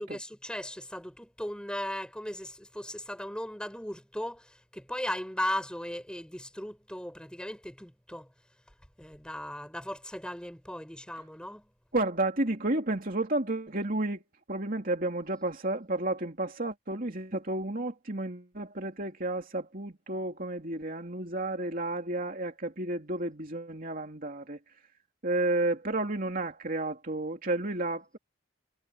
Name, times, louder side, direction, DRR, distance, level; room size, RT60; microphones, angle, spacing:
voice 1, 0.0-8.3 9.0-11.7, left 1 dB, 5° left, 6.2 m, -37 dB
voice 2, 11.9-14.2 14.5-24.6 25.2-28.2, right 2 dB, 45° right, 3.1 m, -31 dB
head